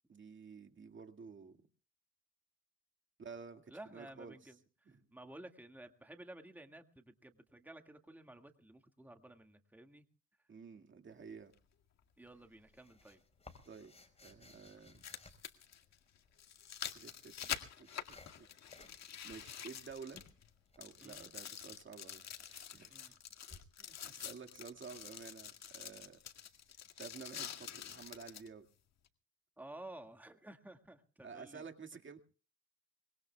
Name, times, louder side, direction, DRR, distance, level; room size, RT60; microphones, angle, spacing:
voice 1, 0.1-1.6 3.2-4.5 4.9-5.1 10.5-11.5 13.7-13.9 14.2-15.0 16.9-17.9 18.4-18.5 19.2-20.3 20.8-23.1 23.5-26.2 27.0-28.7 31.2-32.2, right 5 dB, 40° right, 6 dB, 2.0 m, -52 dB
voice 2, 3.7-10.0 12.2-13.2 21.0-21.3 22.9-23.1 29.6-31.6, right 1 dB, 5° right, 6 dB, 1.9 m, -54 dB
sound 1, 11.5-11.6 13.6-13.7 14.8-20.5 20.8-28.5 29.1-29.2, left 9 dB, 60° left, 2.0 m, -47 dB
sound 2, 12.3-16.1 16.9-18.4 18.7-19.0 19.3-21.3 23.5-23.6, left 3 dB, 20° left, 4.4 m, -60 dB
24.5 x 22.0 x 2.3 m, 0.36 s
cardioid pair, 90°, 30 cm